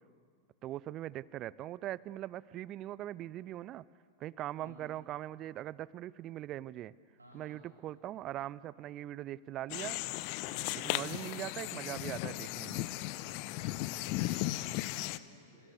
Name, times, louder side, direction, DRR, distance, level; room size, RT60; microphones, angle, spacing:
voice 1, 0.6-3.9 4.2-6.9 7.3-10.0 10.7-12.9, right 13 dB, 35° right, 21 dB, 0.6 m, -41 dB
voice 2, 7.2-7.6 13.6-15.7, left 1 dB, 80° right, -4 dB, 7.2 m, -58 dB
sound 1, 9.7-15.2, left 17 dB, 45° left, 0.8 m, -36 dB
28.5 x 28.0 x 6.8 m, 2.1 s
figure-of-eight pair, 90°, 0 cm